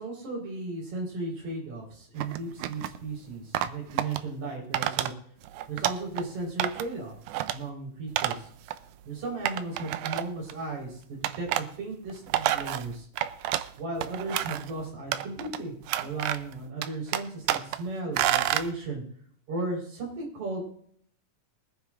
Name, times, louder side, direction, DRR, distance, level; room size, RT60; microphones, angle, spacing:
voice 1, 0.0-5.1 5.7-7.1 7.5-8.5 9.1-13.1 13.8-15.7 16.0-19.0 19.5-20.7, right 2 dB, 70° right, -1 dB, 5.5 m, -35 dB
sound 1, 2.2-3.0 3.5-4.2 4.7-5.1 5.4-6.2 6.6-6.9 7.3-7.6 8.2-8.4 8.7-8.8 9.5-10.5 11.2-11.7 12.1-13.7 14.0-14.7 15.1-15.6 15.9-16.5 16.8-17.8 18.2-18.7, right 13 dB, 90° right, 2.1 m, -29 dB
23.5 x 9.7 x 2.5 m, 0.62 s
omnidirectional pair, 3.4 m